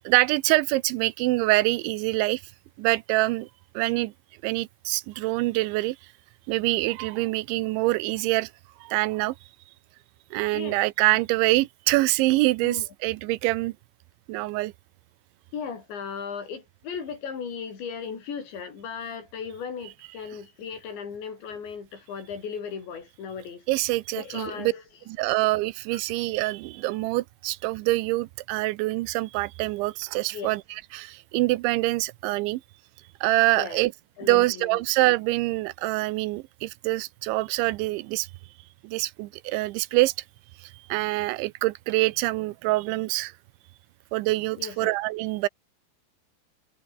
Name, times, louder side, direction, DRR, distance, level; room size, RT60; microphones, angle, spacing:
voice 1, 0.1-2.4 2.8-3.5 3.7-4.1 4.4-6.0 6.5-8.5 8.8-9.4 10.3-13.7 14.3-14.7 23.7-24.7 25.1-32.6 33.2-33.9 34.2-38.3 38.8-40.1 40.6-43.3 44.1-45.5, right 20 dB, 85° right, 3.1 m, -25 dB
voice 2, 15.5-23.7 24.1-24.8 25.2-25.3 25.9-26.0 30.3-30.6 33.5-33.8 34.2-34.8 44.6-44.9, left 6 dB, 75° left, 7.2 m, -36 dB
omnidirectional pair, 5.2 m